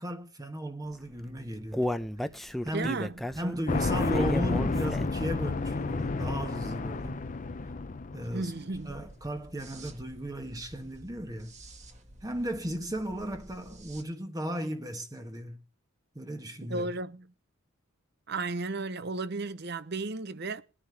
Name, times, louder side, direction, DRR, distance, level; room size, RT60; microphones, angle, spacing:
voice 1, 0.0-1.9 2.6-2.9 3.4-7.2 7.6-7.7 8.1-8.5 8.9-11.5 12.2-15.6 16.1-16.9, right 1 dB, 20° right, 1.2 m, -35 dB
Human voice, 1.1-5.3 5.7-5.8 6.3-6.4, left 1 dB, ahead, 0.6 m, -34 dB
voice 2, 2.7-3.3 8.3-9.0 16.6-17.3 18.3-20.6, right 3 dB, 50° right, 0.8 m, -34 dB
sound 1, 3.7-8.6, left 3 dB, 40° left, 0.7 m, -31 dB
sound 2, 8.7-14.0, right 1 dB, 35° right, 1.7 m, -51 dB
21.0 x 9.9 x 3.4 m
head